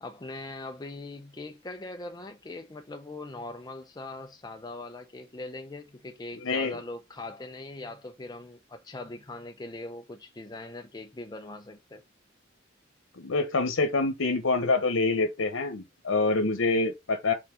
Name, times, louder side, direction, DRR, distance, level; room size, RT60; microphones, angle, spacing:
voice 1, 0.0-12.0, left 2 dB, 20° left, 0.6 m, -41 dB
voice 2, 6.4-6.8 13.2-17.3, left 3 dB, 85° left, 1.0 m, -26 dB
5.7 x 4.2 x 4.5 m
head